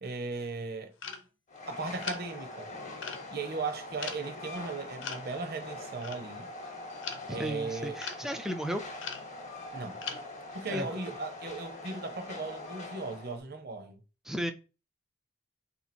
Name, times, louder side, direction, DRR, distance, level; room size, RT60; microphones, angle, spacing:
voice 1, 0.0-0.9 1.7-2.7 3.3-6.5 7.3-8.0 9.7-10.0 10.5-14.0, right 3 dB, 55° right, 0.8 m, -37 dB
sound 1, 1.0-1.2 2.0-2.2 3.0-3.3 4.0-4.2 5.0-5.3 6.0-6.2 6.7-7.5 8.0-8.2 9.0-9.3 9.7-10.3, left 6 dB, 80° left, 0.8 m, -39 dB
Train, 1.5-13.4, left 2 dB, 40° left, 0.9 m, -43 dB
voice 2, 7.3-8.8 10.7-11.0 14.2-14.5, equal, 5° right, 0.4 m, -34 dB
3.4 x 2.8 x 4.3 m
head